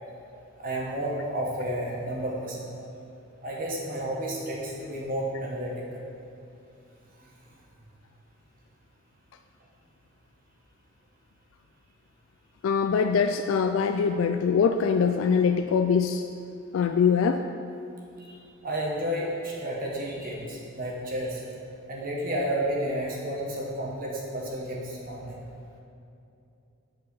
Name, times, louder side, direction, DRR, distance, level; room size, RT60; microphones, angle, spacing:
voice 1, 0.6-2.7 3.4-6.0 18.3-18.4 18.6-21.4 21.9-25.4, right 1 dB, 40° right, -3 dB, 1.4 m, -31 dB
voice 2, 12.6-16.2 16.7-17.5, left 6 dB, 70° left, 7 dB, 0.3 m, -23 dB
8.4 x 4.7 x 6.3 m, 2.7 s
head